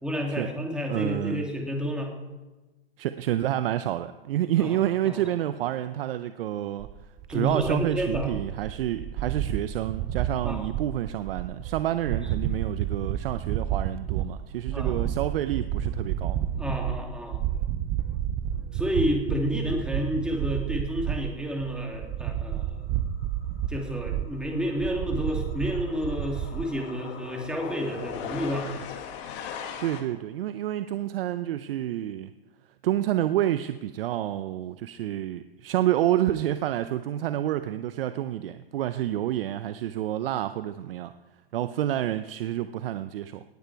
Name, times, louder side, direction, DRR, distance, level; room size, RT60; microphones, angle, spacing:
voice 1, 0.0-2.1 4.6-5.3 7.3-8.3 10.4-10.7 14.7-15.0 16.6-17.4 18.7-22.8 23.7-28.9, equal, 5° right, 1 dB, 2.2 m, -30 dB
voice 2, 0.9-1.4 3.0-6.9 7.3-16.4 29.8-32.3 32.8-41.1 41.5-43.4, right 12 dB, 65° right, 12 dB, 0.6 m, -28 dB
sound 1, 6.8-26.6, right 11 dB, 20° right, 0.4 m, -31 dB
sound 2, 23.2-23.4 23.7-30.0, left 7 dB, 35° left, 1.7 m, -40 dB
18.5 x 8.9 x 4.6 m, 1.2 s
hypercardioid pair, 140°, 31 cm